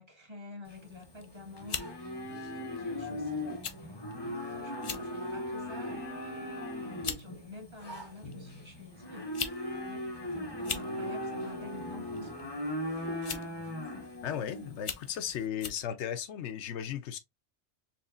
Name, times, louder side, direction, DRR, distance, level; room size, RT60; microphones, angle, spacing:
voice 1, 0.0-3.4 3.8-12.5 14.2-14.7, left 2 dB, 25° right, 1.3 m, -50 dB
Livestock farm animals working animals, 0.7-15.4, left 1 dB, 25° left, 0.8 m, -38 dB
sound 1, 1.0-1.3 1.7-1.9 2.8-2.9 3.6-3.8 4.1-4.2 4.7-5.1 5.6-5.9 6.6-6.7 7.0-7.2 8.3-8.4 9.2-9.6 9.9-10.0 10.5-10.9 12.1-12.4 13.2-13.6 14.1-14.2 14.8-15.1 15.6-15.8, left 6 dB, 55° left, 0.3 m, -37 dB
voice 2, 14.2-17.2, left 9 dB, 80° left, 0.9 m, -36 dB
4.3 x 3.0 x 2.4 m
omnidirectional pair, 1.2 m